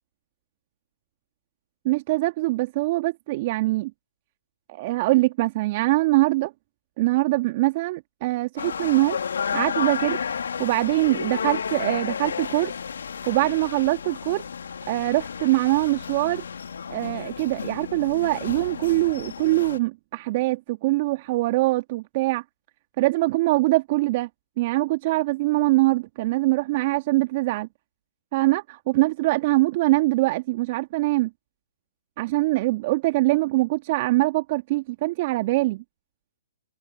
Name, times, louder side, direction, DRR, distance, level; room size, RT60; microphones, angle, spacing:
voice 1, 1.9-3.9 4.7-6.5 7.0-9.2 9.5-10.2 10.6-12.7 13.3-14.4 14.9-16.4 16.9-22.4 23.0-24.3 24.6-27.7 28.3-31.3 32.2-35.8, right 20 dB, 40° right, 1.9 m, -23 dB
sound 1, 8.6-19.8, left 6 dB, 70° left, 2.3 m, -32 dB
hypercardioid pair, 130°, 0 cm